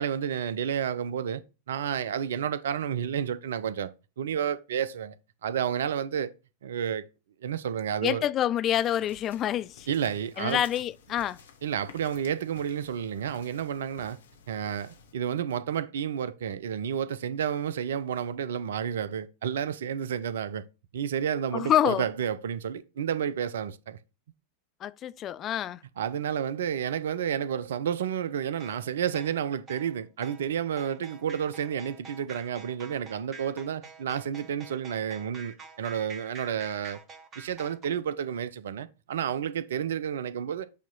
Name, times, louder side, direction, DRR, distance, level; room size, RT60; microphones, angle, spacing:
voice 1, 0.0-1.4 1.7-3.9 4.2-5.2 5.4-6.3 6.6-7.0 7.4-8.2 9.9-10.6 11.6-14.2 14.5-20.6 20.9-24.0 26.0-37.0 37.4-40.7, right 8 dB, 60° right, 0.5 m, -31 dB
voice 2, 8.0-9.9 10.4-11.4 21.5-22.1 24.8-25.8, left 11 dB, 30° left, 0.3 m, -27 dB
sound 1, 8.7-15.1, left 5 dB, 65° left, 0.9 m, -54 dB
sound 2, 28.6-37.9, right 4 dB, 25° right, 1.0 m, -48 dB
8.2 x 3.0 x 3.9 m
figure-of-eight pair, 90°, 0 cm